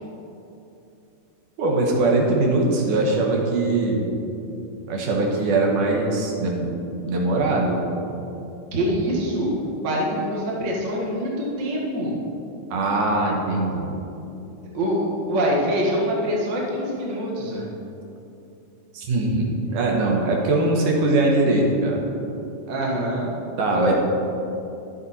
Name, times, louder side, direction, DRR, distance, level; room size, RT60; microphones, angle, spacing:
voice 1, 1.6-4.0 4.9-7.8 12.7-14.0 18.9-22.0 23.6-23.9, right 2 dB, 75° right, 0 dB, 2.7 m, -21 dB
voice 2, 8.7-9.5 9.8-12.2 14.7-17.8 20.4-20.5 22.7-23.3 23.7-23.9, equal, 40° right, -3 dB, 1.0 m, -24 dB
11.5 x 7.7 x 4.2 m, 2.8 s
omnidirectional pair, 3.7 m